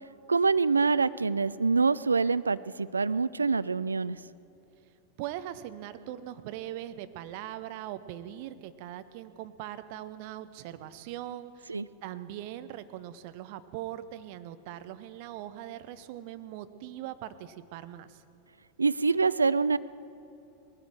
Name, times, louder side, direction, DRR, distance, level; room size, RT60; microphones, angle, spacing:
voice 1, 0.3-4.2 11.7-11.9 18.8-19.8, right 4 dB, 75° right, 16 dB, 0.3 m, -25 dB
voice 2, 5.2-18.2, right 12 dB, 45° right, 12 dB, 0.7 m, -41 dB
20.0 x 14.5 x 4.7 m, 2.9 s
figure-of-eight pair, 90°, 0 cm